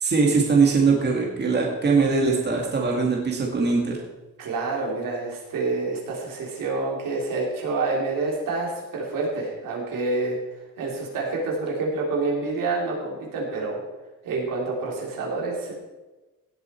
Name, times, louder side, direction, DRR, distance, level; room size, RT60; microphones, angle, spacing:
voice 1, 0.0-4.0, right 4 dB, 30° right, 0 dB, 2.0 m, -21 dB
voice 2, 4.4-10.4 10.8-13.8 14.2-15.7, right 3 dB, 85° right, -2 dB, 3.7 m, -27 dB
17.0 x 7.9 x 4.5 m, 1.1 s
cardioid pair, 155°, 32 cm